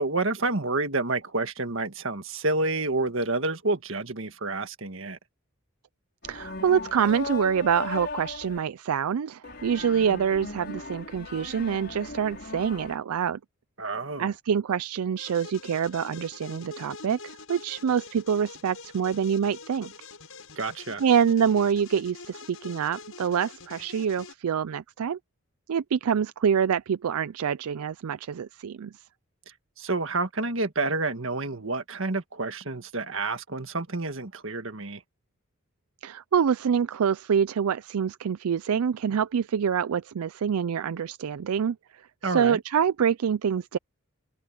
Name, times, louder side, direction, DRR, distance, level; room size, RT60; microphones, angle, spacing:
voice 1, 0.0-5.2 13.8-14.3 20.6-21.0 29.8-35.0 42.2-42.6, right 3 dB, 65° right, 1.7 m, -29 dB
sound 1, 6.2-8.6 9.4-13.0, left 3 dB, 50° left, 5.5 m, -38 dB
voice 2, 6.3-13.4 14.2-19.9 21.0-25.2 25.7-28.9 36.0-43.8, right 7 dB, 90° right, 0.4 m, -26 dB
sound 2, 15.2-24.3, left 4 dB, 75° left, 7.0 m, -45 dB
open air
head